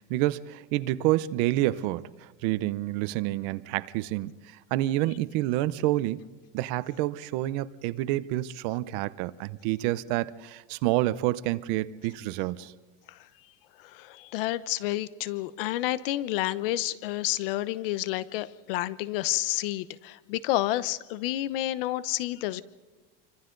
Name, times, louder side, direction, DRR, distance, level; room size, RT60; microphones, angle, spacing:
voice 1, 0.0-6.3 6.5-12.7, right 16 dB, 50° right, 0.7 m, -28 dB
voice 2, 13.8-22.6, left 15 dB, 70° left, 1.0 m, -30 dB
28.5 x 25.0 x 3.9 m
cardioid pair, 175°, 29 cm